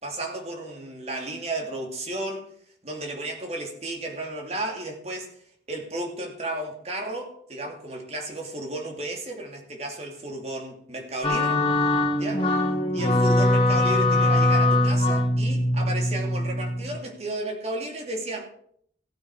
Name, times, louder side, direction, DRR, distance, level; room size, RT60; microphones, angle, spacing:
voice 1, 0.0-2.5 2.8-5.3 5.7-11.6 12.1-12.5 12.9-18.5, right 1 dB, 35° right, 2.6 m, -33 dB
sound 1, 11.2-17.0, left 1 dB, 30° left, 2.1 m, -22 dB
15.5 x 8.8 x 4.8 m
head